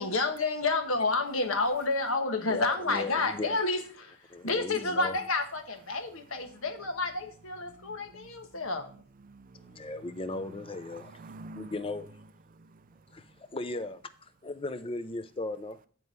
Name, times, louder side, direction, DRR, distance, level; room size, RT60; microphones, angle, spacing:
voice 1, 0.0-8.9, left 3 dB, 65° left, 1.3 m, -30 dB
voice 2, 2.5-3.6 4.3-5.2 9.7-11.2 11.6-12.1 13.1-15.8, left 2 dB, 25° left, 0.6 m, -37 dB
voice 3, 7.7-8.6 9.2-10.2 10.5-12.0 12.5-13.4, right 2 dB, 40° right, 0.4 m, -50 dB
9.9 x 4.7 x 5.4 m
head